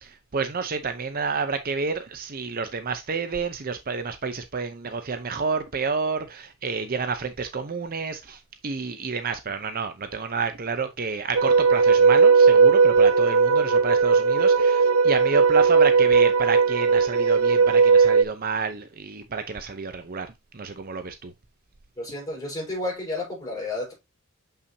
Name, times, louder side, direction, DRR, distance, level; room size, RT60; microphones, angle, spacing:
voice 1, 0.0-20.3 20.5-21.3, right 4 dB, 45° right, 0.7 m, -29 dB
sound 1, 11.4-18.2, right 5 dB, 80° right, 0.5 m, -17 dB
voice 2, 22.0-23.9, left 2 dB, 15° left, 5.1 m, -31 dB
6.8 x 5.7 x 2.8 m
head